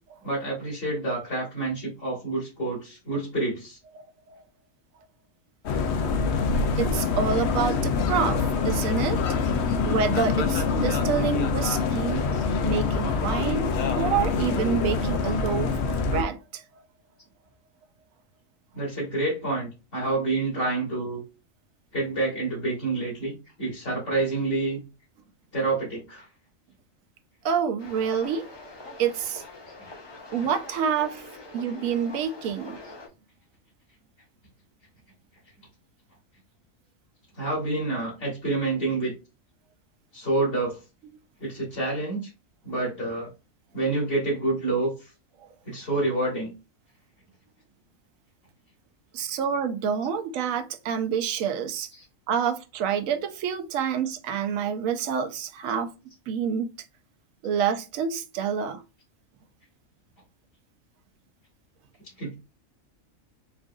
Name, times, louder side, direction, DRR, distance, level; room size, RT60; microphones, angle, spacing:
voice 1, 0.2-3.8 6.0-6.1 9.4-9.5 12.3-12.4 18.7-21.2 21.9-24.8 25.5-26.3 37.4-39.1 40.1-40.8 41.4-42.3 42.6-43.3 43.7-45.1 45.7-46.5 51.9-52.0 52.3-52.5 62.2-62.3, right 2 dB, 45° left, 1.9 m, -28 dB
sound 1, 5.6-16.2, left 4 dB, 65° left, 0.8 m, -25 dB
voice 2, 6.7-9.4 9.8-12.3 12.6-13.7 14.0-16.6 27.4-28.5 29.0-29.4 30.3-31.3 31.5-32.8 45.4-45.5 49.1-51.9 52.3-55.9 56.3-56.7 57.4-58.8, right 7 dB, 80° right, 1.0 m, -27 dB
sound 2, 27.8-33.1, left 2 dB, 25° left, 0.6 m, -44 dB
4.5 x 2.5 x 2.3 m
omnidirectional pair, 1.4 m